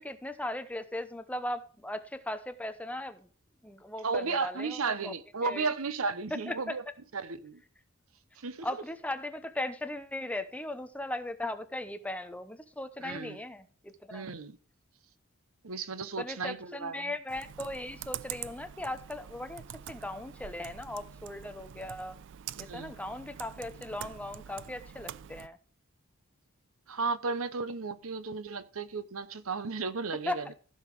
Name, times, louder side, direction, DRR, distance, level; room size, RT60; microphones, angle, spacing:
voice 1, 0.0-3.3 3.6-5.1 5.4-5.7 6.5-6.8 8.6-14.3 16.2-22.2 22.6-25.6 30.3-30.5, left 1 dB, 5° left, 0.8 m, -38 dB
voice 2, 4.0-6.8 7.1-7.6 8.4-8.7 13.0-13.4 14.1-14.6 15.6-17.1 22.6-23.0 26.9-30.4, right 4 dB, 90° right, 0.9 m, -34 dB
Computer keyboard, 17.3-25.5, right 10 dB, 60° right, 0.4 m, -45 dB
15.0 x 5.7 x 4.8 m
head